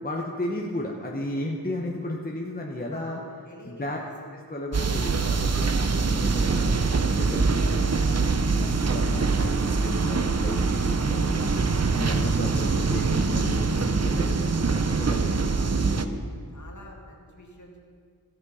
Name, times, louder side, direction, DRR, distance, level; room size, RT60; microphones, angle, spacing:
voice 1, 0.0-3.2 3.6-4.0 4.3-8.0 8.5-11.5 11.9-14.7 15.0-15.8, left 1 dB, 25° left, -1 dB, 1.0 m, -34 dB
voice 2, 2.9-4.3 8.8-9.2 9.6-10.2 16.5-17.8, left 1 dB, 50° left, -1 dB, 2.1 m, -48 dB
sound 1, 4.7-16.1, right 4 dB, 45° right, 0.6 m, -24 dB
sound 2, 6.2-16.2, equal, 20° right, 1.0 m, -35 dB
14.5 x 8.5 x 5.6 m, 2.1 s
wide cardioid pair, 65°, 37 cm